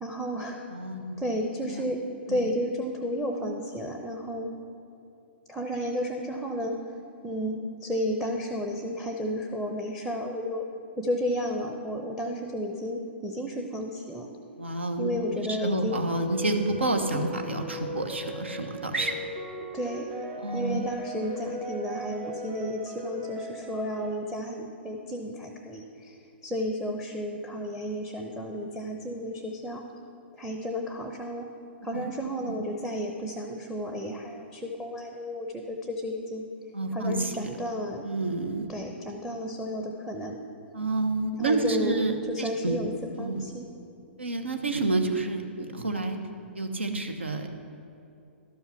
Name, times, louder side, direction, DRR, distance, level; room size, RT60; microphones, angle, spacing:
voice 1, 0.0-0.6 1.2-2.0 2.3-4.5 5.5-10.6 11.0-14.3 15.0-16.0 19.7-20.1 20.5-29.8 30.3-31.5 31.8-36.5 36.9-38.0 38.7-40.4 41.4-42.9 43.2-43.7, equal, ahead, 3 dB, 0.7 m, -32 dB
voice 2, 0.7-1.2 1.7-1.8 2.3-2.4 14.6-15.1 15.4-19.2 20.4-20.9 31.9-32.1 32.5-32.6 36.7-37.3 38.0-38.7 40.7-42.8 43.2-43.4 44.2-46.2 46.5-47.5, right 2 dB, 80° right, 5 dB, 1.0 m, -29 dB
sound 1, 16.1-24.1, right 1 dB, 30° right, 1.9 m, -38 dB
12.0 x 5.7 x 5.7 m, 2.6 s
figure-of-eight pair, 115°, 6 cm